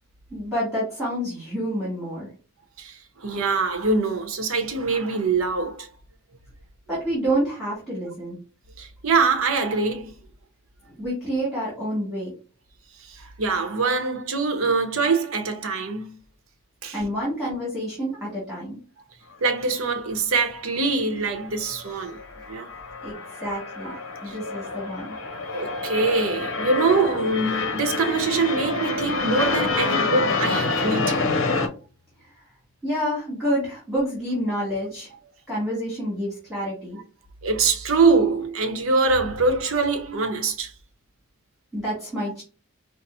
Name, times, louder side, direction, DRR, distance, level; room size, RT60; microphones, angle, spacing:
voice 1, 0.3-2.3 6.9-8.4 11.0-12.3 16.9-18.8 23.0-23.9 24.2-25.2 32.2-32.4 32.8-35.1 35.5-37.0 41.7-42.4, equal, ahead, 2.0 m, -28 dB
voice 2, 2.8-5.9 8.8-10.1 13.1-16.2 16.8-17.0 19.4-22.2 22.5-22.7 24.3-24.4 25.5-31.2 37.4-40.7, right 4 dB, 80° right, 0.8 m, -23 dB
sound 1, 21.7-31.7, left 3 dB, 70° left, 0.7 m, -27 dB
5.4 x 2.0 x 2.6 m
head